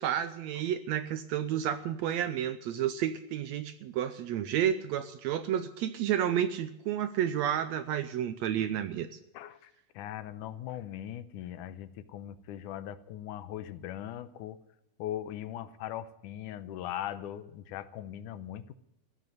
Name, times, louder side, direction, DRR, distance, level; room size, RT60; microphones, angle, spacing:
voice 1, 0.0-9.2, right 10 dB, 75° right, 11 dB, 1.7 m, -31 dB
voice 2, 9.3-14.6 15.0-18.7, left 11 dB, 80° left, 13 dB, 2.2 m, -40 dB
15.5 x 8.1 x 9.3 m, 0.88 s
omnidirectional pair, 3.6 m